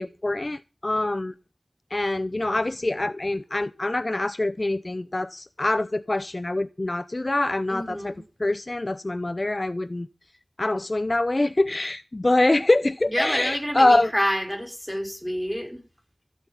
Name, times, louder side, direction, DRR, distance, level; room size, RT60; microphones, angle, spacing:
voice 1, 0.0-1.3 1.9-8.1 8.4-10.1 10.6-14.1, left 2 dB, 40° left, 0.6 m, -24 dB
voice 2, 7.7-8.2 13.1-15.8, equal, ahead, 5.0 m, -28 dB
15.0 x 8.9 x 5.5 m
wide cardioid pair, 70°, 0 cm